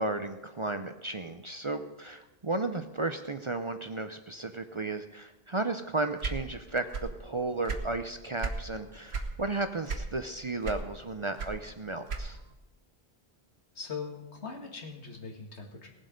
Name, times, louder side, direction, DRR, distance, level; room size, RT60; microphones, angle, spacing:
voice 1, 0.0-12.4, right 2 dB, 35° right, 8 dB, 0.5 m, -34 dB
sound 1, 6.2-7.2 7.5-8.7 9.1-9.4 9.9-10.3 10.6-12.5, right 4 dB, 75° right, 1.4 m, -35 dB
voice 2, 13.7-15.9, left 5 dB, 85° left, 2 dB, 2.3 m, -41 dB
18.5 x 7.7 x 5.2 m, 1.0 s
omnidirectional pair, 1.1 m